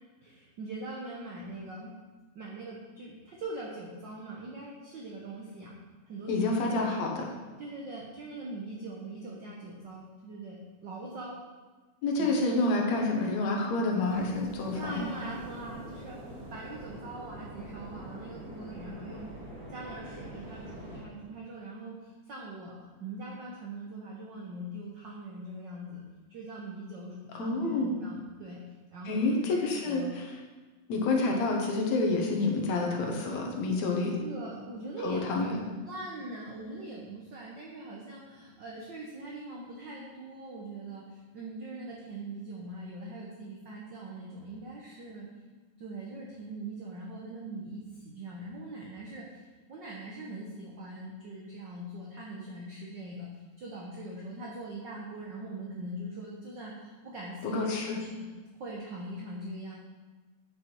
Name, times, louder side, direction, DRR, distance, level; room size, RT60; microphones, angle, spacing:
voice 1, 0.2-1.9 2.3-5.7 6.1-7.1 7.6-10.6 10.8-11.4 12.2-12.6 13.1-13.5 14.7-19.3 19.7-26.0 26.3-28.6 28.9-30.1 34.1-35.6 35.8-45.3 45.8-49.4 49.7-57.7 57.9-58.0 58.5-59.7, right 2 dB, 65° right, -3 dB, 1.1 m, -42 dB
voice 2, 6.3-7.2 12.0-15.1 27.3-28.0 29.1-30.3 30.9-34.2 35.0-35.6 57.4-58.0, left 3 dB, 70° left, 0 dB, 2.4 m, -28 dB
sound 1, 14.0-21.0, equal, 35° right, 2.2 m, -45 dB
9.1 x 6.0 x 4.5 m, 1.3 s
omnidirectional pair, 3.3 m